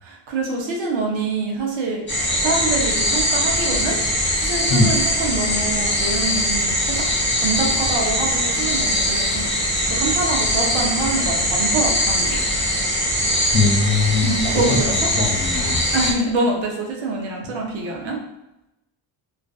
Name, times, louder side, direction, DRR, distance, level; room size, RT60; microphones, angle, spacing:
voice 1, 0.0-2.0 2.4-4.0 4.4-7.0 7.4-9.5 9.9-12.4 14.2-14.9 15.9-18.2, right 3 dB, 65° right, 0 dB, 0.9 m, -25 dB
sound 1, 2.1-16.1, left 1 dB, 25° left, 1.0 m, -21 dB
voice 2, 13.5-15.8, left 3 dB, 70° left, -1 dB, 0.9 m, -21 dB
2.4 x 2.4 x 2.3 m, 0.91 s
cardioid pair, 85°, 49 cm